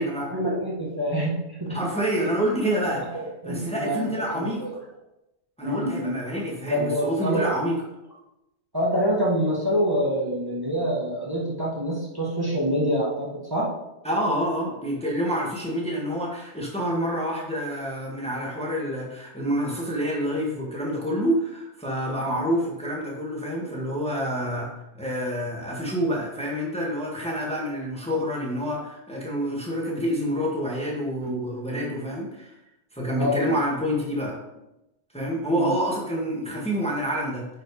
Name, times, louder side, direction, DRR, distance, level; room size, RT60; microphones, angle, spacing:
voice 1, 0.3-1.8 3.0-4.1 4.4-4.7 5.6-6.1 6.7-7.5 8.7-13.7 22.2-22.4 31.2-31.4 31.7-32.2 33.2-33.6 35.5-35.7, equal, 20° right, -5 dB, 1.9 m, -26 dB
voice 2, 1.7-3.0 3.4-4.7 5.6-7.8 14.0-32.5 32.9-34.4 35.1-37.5, equal, 5° left, -3 dB, 1.8 m, -27 dB
10.0 x 5.2 x 4.9 m, 0.92 s
omnidirectional pair, 1.3 m